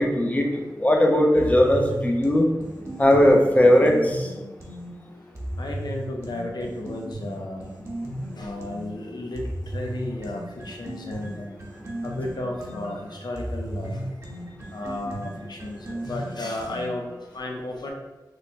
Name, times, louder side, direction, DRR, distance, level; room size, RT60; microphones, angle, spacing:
voice 1, 0.0-2.5 3.0-4.3, left 1 dB, 20° left, 1 dB, 0.6 m, -18 dB
sound 1, 1.4-4.9 5.4-8.9 9.4-17.2, right 1 dB, 40° right, 1.0 m, -35 dB
voice 2, 5.6-7.8 8.4-11.5 12.0-14.0 14.7-17.1 17.3-17.9, left 1 dB, 70° left, 0 dB, 0.7 m, -33 dB
3.2 x 2.2 x 4.1 m, 1.1 s
wide cardioid pair, 65°, 8 cm